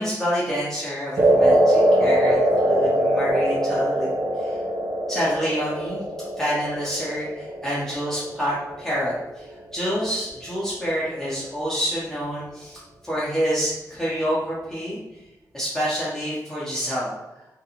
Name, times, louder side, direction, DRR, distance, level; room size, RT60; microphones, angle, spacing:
voice 1, 0.0-4.1 4.4-4.6 5.1-6.0 6.4-15.0 15.5-17.2, equal, 5° left, -9 dB, 0.6 m, -27 dB
sound 1, 1.2-9.5, right 1 dB, 60° right, 0.4 m, -22 dB
2.4 x 2.2 x 2.8 m, 0.97 s
wide cardioid pair, 105°, 7 cm